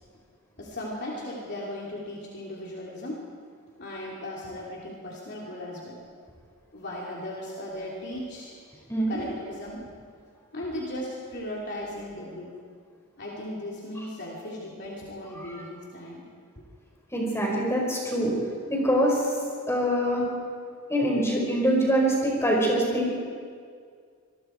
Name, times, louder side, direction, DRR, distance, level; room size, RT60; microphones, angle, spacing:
voice 1, 0.6-3.2 3.8-6.0 6.7-8.5 9.1-9.8 10.5-12.6 13.2-16.2, left 1 dB, 50° left, -4 dB, 3.3 m, -37 dB
voice 2, 17.1-18.3 18.7-19.3 19.7-20.2 20.9-23.2, equal, 10° left, -2 dB, 5.4 m, -24 dB
26.0 x 21.5 x 4.7 m, 2.1 s
head